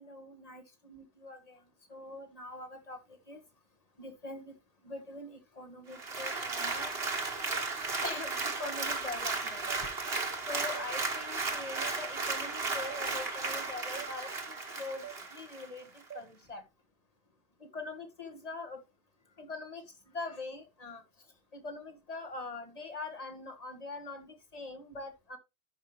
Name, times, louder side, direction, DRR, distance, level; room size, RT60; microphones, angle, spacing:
voice 1, 0.0-1.6 1.9-3.4 4.0-4.5 4.8-7.6 8.0-9.6 10.5-16.6 17.7-18.8 19.4-21.0 21.5-25.4, left 3 dB, 35° left, 1.6 m, -43 dB
Applause, 5.9-15.7 16.1-16.2, right 3 dB, 70° right, 1.7 m, -35 dB
sound 1, 8.6-8.8 9.7-9.8 10.7-10.9 11.8-12.0 12.9-13.0 14.0-14.1 15.0-15.2 16.1-16.3, right 10 dB, 55° right, 0.9 m, -44 dB
11.5 x 5.4 x 3.1 m
omnidirectional pair, 1.1 m